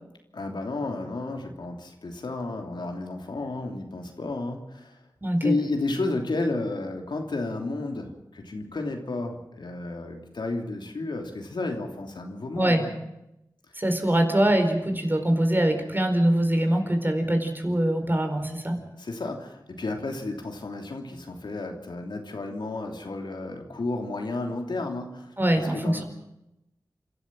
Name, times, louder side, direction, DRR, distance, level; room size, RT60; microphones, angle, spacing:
voice 1, 0.3-5.0 5.4-12.9 19.0-26.0, left 2 dB, 80° left, 2 dB, 3.0 m, -32 dB
voice 2, 5.2-5.5 12.5-12.8 13.8-18.8 25.4-26.0, right 1 dB, 25° right, 6 dB, 4.5 m, -23 dB
28.5 x 13.0 x 7.6 m, 0.89 s
cardioid pair, 45°, 8 cm